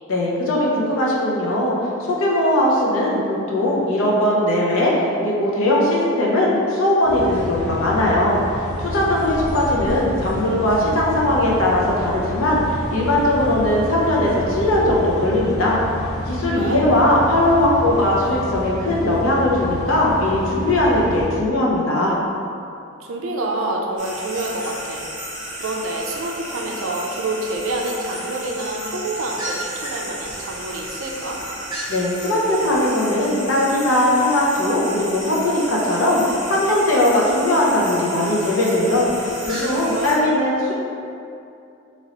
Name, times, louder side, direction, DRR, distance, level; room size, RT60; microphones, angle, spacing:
voice 1, 0.1-3.2 3.5-4.9 5.2-8.4 8.8-15.8 16.3-22.2 31.9-36.2 36.5-40.7, left 1 dB, 70° left, -4 dB, 0.6 m, -19 dB
sound 1, 7.0-21.3, left 1 dB, 20° left, 1.3 m, -29 dB
voice 2, 23.0-25.1 25.5-31.4 39.8-40.2, right 2 dB, 65° right, 0 dB, 0.4 m, -27 dB
sound 2, 24.0-40.1, right 1 dB, 20° right, 0.8 m, -33 dB
2.9 x 2.9 x 2.8 m, 2.5 s
head